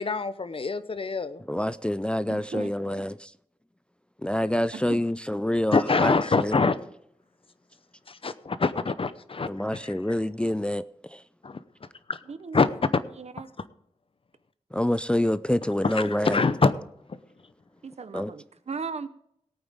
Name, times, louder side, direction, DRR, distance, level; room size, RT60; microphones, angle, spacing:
voice 1, 0.0-1.4 5.7-6.8 8.1-10.0 11.4-11.6 12.1-12.2 12.5-12.7 15.8-16.7 17.1-17.2, left 4 dB, 55° left, 0.7 m, -25 dB
voice 2, 1.5-3.1 4.2-6.6 9.4-10.8 11.1-11.2 14.7-16.5 18.1-18.3, left 1 dB, 10° left, 0.3 m, -27 dB
voice 3, 2.3-2.7 4.7-5.0 12.3-12.6 13.2-13.5 17.8-19.1, right 5 dB, 70° right, 0.8 m, -37 dB
19.0 x 8.8 x 3.6 m
wide cardioid pair, 75°, 11 cm